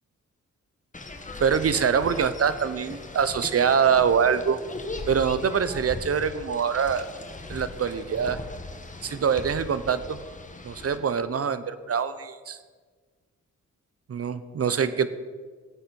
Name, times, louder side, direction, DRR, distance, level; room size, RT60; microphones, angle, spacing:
sound 1, 0.9-11.0, left 3 dB, 25° left, 1.6 m, -39 dB
voice 1, 1.4-4.6 5.1-7.1 7.5-8.4 9.0-10.2 10.6-12.6 14.1-15.1, right 7 dB, 50° right, 13 dB, 1.0 m, -24 dB
16.0 x 8.8 x 4.7 m, 1.5 s
cardioid pair, 60°, 31 cm